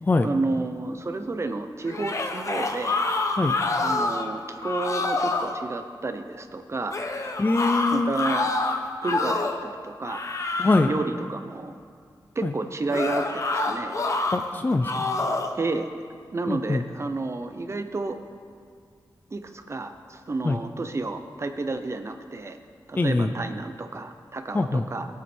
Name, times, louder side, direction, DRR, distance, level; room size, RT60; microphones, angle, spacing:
voice 1, 0.2-3.0 3.8-6.9 7.9-8.5 9.0-10.2 10.5-11.8 12.3-14.0 15.5-15.9 16.3-18.2 19.3-22.6 22.9-25.1, right 3 dB, 35° right, 7 dB, 0.8 m, -31 dB
sound 1, 1.9-4.3 4.6-5.5 6.9-9.6 10.0-11.0 12.9-14.4 14.8-15.6, left 3 dB, 40° left, 1.0 m, -27 dB
voice 2, 7.4-8.1 10.6-10.9 12.4-12.5 14.3-15.1 16.5-16.8 20.4-20.6 23.0-23.3 24.5-24.9, left 3 dB, 25° left, 7 dB, 0.5 m, -23 dB
21.0 x 8.6 x 4.5 m, 2.1 s
wide cardioid pair, 155°, 8 cm